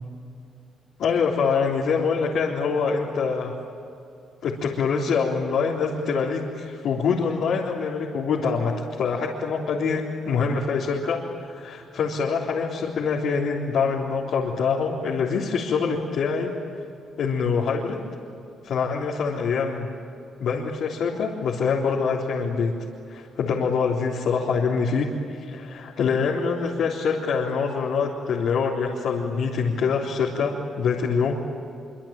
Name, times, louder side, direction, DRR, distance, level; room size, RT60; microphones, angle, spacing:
voice 1, 1.0-3.5 4.4-8.7 9.0-11.2 11.5-16.5 17.2-18.0 18.6-19.9 20.4-22.7 23.1-31.4, left 5 dB, 70° left, -4 dB, 3.7 m, -25 dB
25.5 x 25.5 x 9.0 m, 2.5 s
cardioid pair, 90°, 0 cm